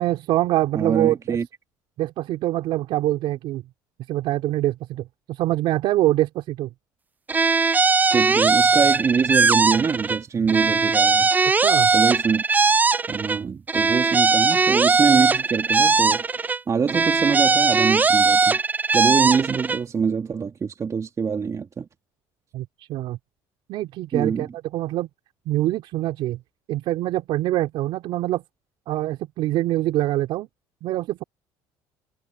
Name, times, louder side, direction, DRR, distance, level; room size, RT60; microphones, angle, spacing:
voice 1, 0.0-1.4 2.0-3.6 4.1-6.7 11.5-11.9 22.5-23.2 23.7-25.1 25.5-26.4 26.7-28.4 28.9-30.5 30.8-31.2, right 15 dB, 70° right, 4.1 m, -24 dB
voice 2, 0.7-1.5 8.1-11.3 11.9-12.4 13.1-16.3 16.7-18.6 18.9-21.9 24.1-24.5, right 6 dB, 35° right, 2.7 m, -24 dB
sound 1, 7.3-10.2 10.5-13.4 13.7-16.6 16.9-19.8, right 4 dB, 20° right, 0.3 m, -19 dB
supercardioid pair, 85°, 9 cm